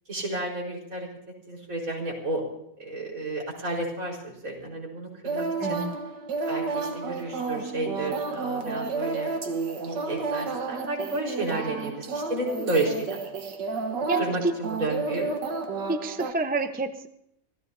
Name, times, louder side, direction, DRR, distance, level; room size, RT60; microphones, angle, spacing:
voice 1, 0.1-1.1 1.5-2.4 2.8-5.8 6.5-9.3 9.8-13.2 14.2-15.3, right 2 dB, 50° right, -2 dB, 5.1 m, -31 dB
sound 1, 5.2-16.3, right 4 dB, 85° right, 2.0 m, -31 dB
voice 2, 5.6-5.9 14.1-14.2 15.9-17.1, right 3 dB, 10° right, 7 dB, 0.4 m, -28 dB
27.5 x 15.0 x 2.7 m, 0.74 s
omnidirectional pair, 1.8 m